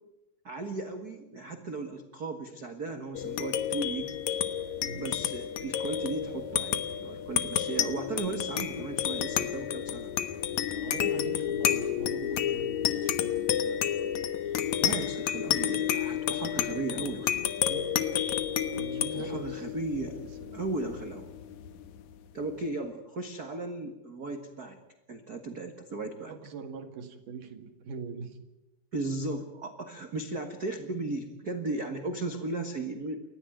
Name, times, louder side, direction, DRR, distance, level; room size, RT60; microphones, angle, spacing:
voice 1, 0.4-4.4 4.9-10.1 14.7-17.6 19.1-20.2 20.5-21.3 22.3-24.8 25.1-26.3 28.9-33.2, right 3 dB, 90° right, 5 dB, 0.8 m, -36 dB
sound 1, 3.1-22.0, left 10 dB, 65° left, 2.1 m, -31 dB
voice 2, 10.7-13.8 17.6-18.1 18.7-19.7 20.2-20.8 26.3-28.4, right 5 dB, 60° right, 6 dB, 3.2 m, -43 dB
29.0 x 14.0 x 9.0 m, 0.96 s
omnidirectional pair, 4.6 m